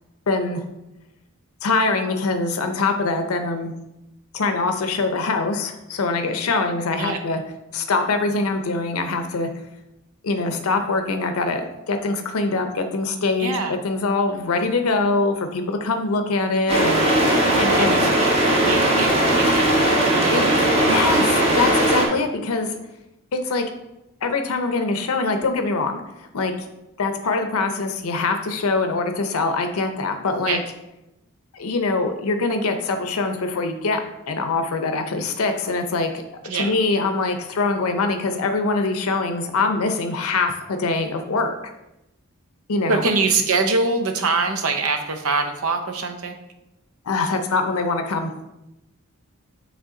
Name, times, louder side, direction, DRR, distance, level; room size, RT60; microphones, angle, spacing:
voice 1, 0.3-0.6 1.6-3.7 4.3-7.4 7.7-9.5 10.2-13.5 13.8-18.0 19.4-19.6 20.3-20.4 20.9-21.3 21.5-22.8 23.3-23.6 24.2-26.0 26.3-26.5 27.0-30.6 31.5-34.0 34.3-36.1 36.5-41.5 42.7-43.0 47.0-48.3, left 3 dB, 90° left, 6 dB, 0.6 m, -23 dB
voice 2, 13.4-13.8 17.4-21.0 30.5-30.6 36.4-36.8 42.9-46.4, right 3 dB, 90° right, 6 dB, 0.7 m, -24 dB
sound 1, 16.7-22.1, right 1 dB, 30° right, 1.2 m, -18 dB
7.4 x 3.4 x 3.7 m, 0.92 s
head